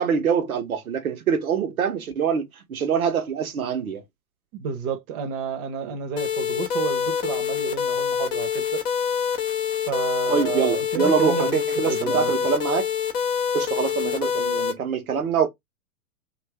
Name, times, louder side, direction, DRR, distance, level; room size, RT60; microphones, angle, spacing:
voice 1, 0.0-4.0 5.8-5.9 10.3-12.9 13.5-15.5, right 7 dB, 75° right, 1.0 m, -24 dB
voice 2, 4.5-8.8 9.9-12.5, right 7 dB, 40° right, 0.8 m, -31 dB
sound 1, 6.2-14.7, left 8 dB, 15° left, 0.3 m, -25 dB
2.6 x 2.5 x 3.3 m
figure-of-eight pair, 110°, 43 cm